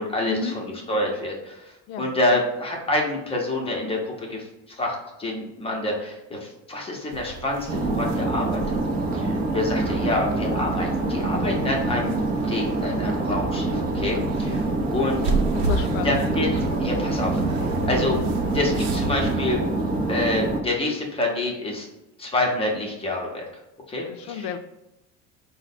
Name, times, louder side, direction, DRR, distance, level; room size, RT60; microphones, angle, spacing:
voice 1, 0.0-8.6 9.1-12.1 12.4-14.6 14.9-15.2 16.0-18.2 18.5-19.6 20.1-21.9 22.2-23.5 23.9-24.5, left 2 dB, 15° left, -1 dB, 0.7 m, -27 dB
sound 1, 7.1-19.4, right 2 dB, 70° right, 0.7 m, -32 dB
sound 2, 7.7-20.6, right 2 dB, 25° right, 0.5 m, -26 dB
voice 2, 15.5-16.2 20.0-20.1 24.0-24.6, left 6 dB, 80° left, 10 dB, 0.5 m, -33 dB
4.5 x 2.1 x 4.1 m, 0.94 s
cardioid pair, 145°, 36 cm